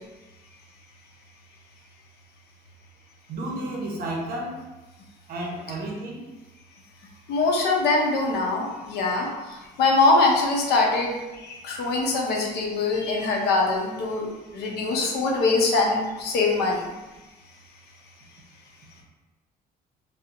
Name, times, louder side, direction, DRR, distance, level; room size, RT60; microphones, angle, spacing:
voice 1, 3.3-4.7 5.3-6.3, right 1 dB, 60° right, -1 dB, 0.7 m, -32 dB
voice 2, 7.3-16.9, left 3 dB, 70° left, 0 dB, 0.6 m, -23 dB
2.8 x 2.0 x 2.4 m, 1.1 s
cardioid pair, 110°, 17 cm